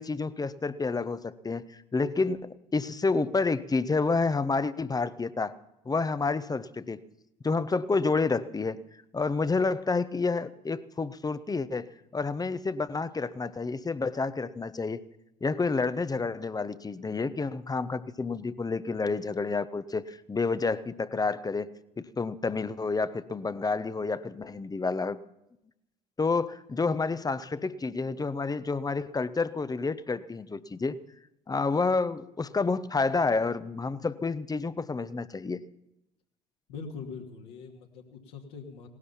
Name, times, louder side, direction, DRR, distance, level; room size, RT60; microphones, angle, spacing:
voice 1, 0.0-5.6 5.8-7.0 7.4-8.8 9.1-15.0 15.4-21.7 22.0-25.2 26.2-31.0 31.5-35.6, left 4 dB, 20° left, 15 dB, 0.9 m, -29 dB
voice 2, 36.7-38.9, left 5 dB, 70° left, 1 dB, 2.6 m, -42 dB
18.5 x 12.5 x 5.8 m, 0.85 s
figure-of-eight pair, 55°, 21 cm